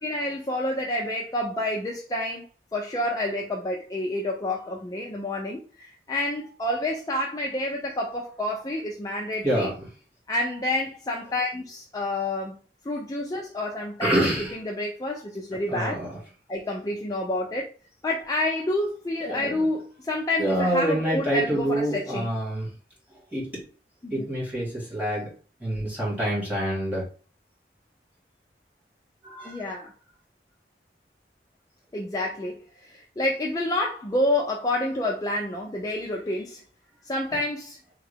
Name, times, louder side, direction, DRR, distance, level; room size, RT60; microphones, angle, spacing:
voice 1, 0.0-2.4 2.7-9.7 10.3-12.6 12.8-16.0 16.5-17.7 18.0-22.3 24.0-24.3 29.4-29.9 31.9-36.6 37.0-37.8, left 1 dB, 20° left, 0.4 m, -29 dB
voice 2, 9.4-9.7 14.0-14.6 15.7-16.2 19.3-19.5 20.4-22.7 23.3-23.6 24.1-25.3 25.6-27.1 29.2-29.6, equal, 10° right, 1.7 m, -26 dB
3.5 x 2.3 x 3.4 m
head